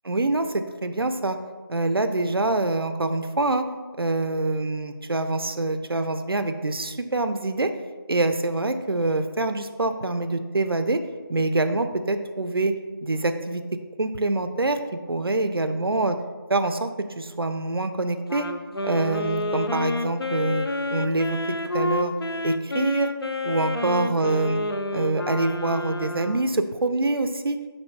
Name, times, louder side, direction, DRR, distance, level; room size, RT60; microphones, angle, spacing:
voice 1, 0.0-1.4 1.7-3.7 4.0-7.7 8.1-11.0 11.3-12.7 13.0-13.6 14.0-16.2 16.5-18.5 18.8-20.6 20.9-21.4 21.7-22.1 22.4-23.1 23.4-24.6 24.9-27.6, right 2 dB, 75° right, 8 dB, 0.4 m, -25 dB
Wind instrument woodwind instrument, 18.3-26.6, left 2 dB, 80° left, 0.4 m, -29 dB
4.1 x 2.6 x 4.7 m, 1.4 s
figure-of-eight pair, 180°, 12 cm